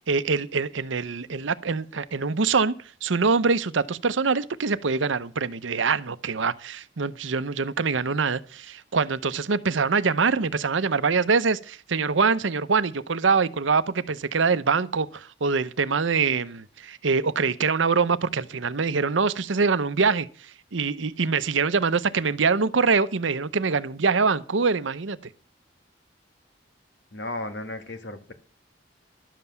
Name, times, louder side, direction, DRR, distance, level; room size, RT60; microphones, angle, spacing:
voice 1, 0.1-2.7 3.0-25.2, right 4 dB, 90° right, 0.7 m, -24 dB
voice 2, 27.1-28.3, left 2 dB, 65° left, 1.8 m, -34 dB
12.0 x 7.6 x 7.0 m
head